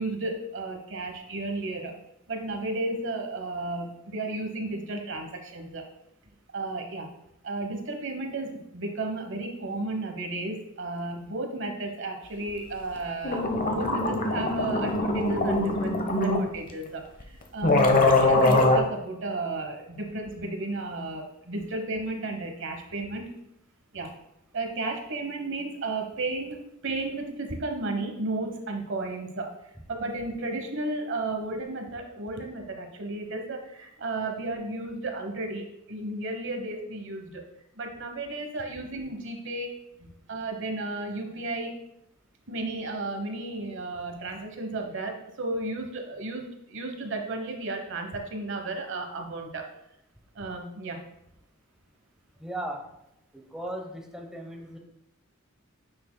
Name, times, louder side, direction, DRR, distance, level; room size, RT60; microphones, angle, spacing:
voice 1, 0.0-1.9 2.3-5.9 6.5-7.1 7.4-23.4 23.9-24.1 24.5-29.5 29.9-37.4 37.7-39.7 40.0-41.8 42.5-49.6 50.3-51.0, right 2 dB, 65° right, 4 dB, 1.2 m, -33 dB
sound 1, 13.0-13.1 13.2-16.4 17.2-17.3 17.6-18.8, left 2 dB, 40° left, 0.9 m, -22 dB
voice 2, 52.4-52.8 53.3-54.8, right 1 dB, 5° right, 1 dB, 0.9 m, -37 dB
9.3 x 6.3 x 2.2 m, 0.82 s
head